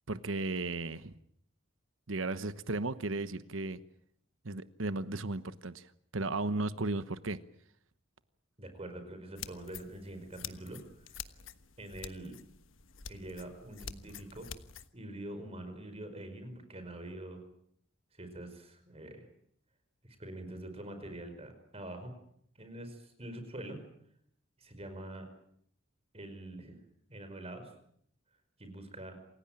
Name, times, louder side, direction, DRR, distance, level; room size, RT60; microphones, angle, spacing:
voice 1, 0.1-1.1 2.1-3.8 4.4-7.4, right 2 dB, 75° right, 13 dB, 1.1 m, -35 dB
voice 2, 8.6-10.8 11.1-11.2 11.8-12.4 13.1-14.5 14.9-17.4 18.1-19.3 20.0-22.1 22.6-23.8 24.6-25.3 26.1-26.7 27.1-27.7 28.6-29.2, right 1 dB, 30° right, 8 dB, 5.1 m, -45 dB
sound 1, 9.4-14.9, left 8 dB, 80° left, 1.3 m, -47 dB
28.0 x 16.5 x 9.0 m, 0.69 s
head